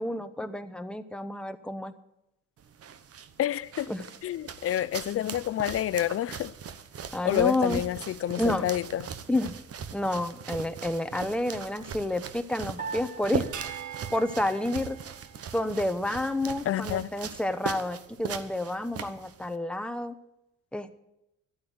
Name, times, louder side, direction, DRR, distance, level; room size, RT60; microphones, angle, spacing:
voice 1, 0.0-1.9 3.9-4.0 7.1-7.8 8.4-8.6 9.3-9.6 9.9-13.5 14.1-15.0 15.5-20.1 20.7-21.0, left 1 dB, 5° left, 0.9 m, -30 dB
sound 1, 2.6-19.6, right 7 dB, 50° right, 1.0 m, -40 dB
voice 2, 3.4-3.9 4.2-6.5 7.2-9.1 16.7-17.1, left 12 dB, 50° left, 0.5 m, -28 dB
Piano, 12.8-15.3, right 5 dB, 30° right, 3.1 m, -43 dB
sound 2, 13.5-16.1, right 9 dB, 75° right, 1.4 m, -43 dB
12.0 x 8.6 x 7.8 m
cardioid pair, 90°, 30 cm